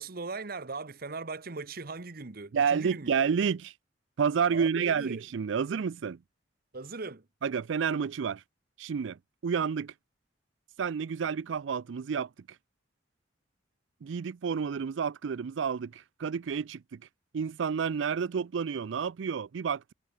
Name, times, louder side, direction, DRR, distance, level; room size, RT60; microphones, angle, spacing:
voice 1, 0.0-3.1 4.5-5.2 6.7-7.3, right 3 dB, 55° right, 1.1 m, -39 dB
voice 2, 2.5-3.7 4.2-6.2 7.4-8.4 8.8-9.9 10.8-12.3 14.0-17.0 17.3-19.9, right 6 dB, 80° right, 0.4 m, -30 dB
head